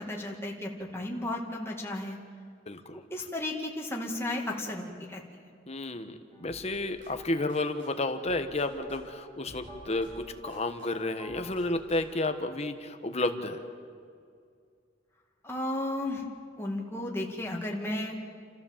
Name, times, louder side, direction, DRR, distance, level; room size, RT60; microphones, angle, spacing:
voice 1, 0.0-2.2 2.9-5.5 15.4-16.2 16.6-18.1, left 1 dB, 15° left, -1 dB, 2.3 m, -34 dB
voice 2, 2.7-3.0 5.7-10.1 10.4-13.6, left 2 dB, 35° left, 8 dB, 1.3 m, -31 dB
sound 1, 6.3-13.3, equal, 30° right, 5.1 m, -54 dB
sound 2, 6.5-7.9 8.2-10.9 11.3-12.3, right 1 dB, 75° right, 7.1 m, -54 dB
29.5 x 14.0 x 7.4 m, 2.3 s
head